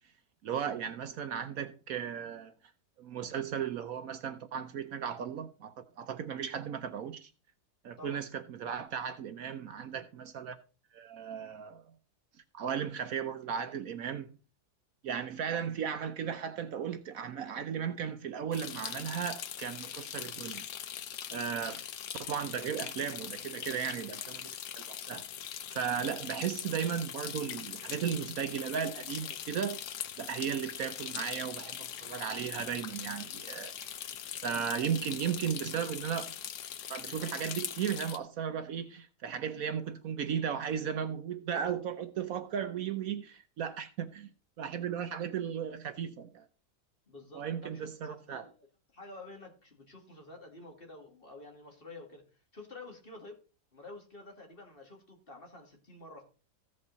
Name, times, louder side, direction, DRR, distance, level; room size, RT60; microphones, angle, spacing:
voice 1, 0.4-2.5 3.0-7.3 7.8-10.6 10.9-11.8 12.5-14.3 15.0-20.7 21.3-21.9 22.2-24.5 24.9-25.2 25.7-29.8 30.2-33.7 34.4-36.3 36.9-44.3 44.6-46.4 47.3-48.5, right 8 dB, 65° right, 1.0 m, -35 dB
sound 1, 18.5-38.2, left 10 dB, 75° left, 1.4 m, -41 dB
voice 2, 47.1-48.5 48.9-52.2 52.5-53.4 53.7-56.2, left 2 dB, 35° left, 2.2 m, -50 dB
15.5 x 5.4 x 3.9 m
omnidirectional pair, 1.8 m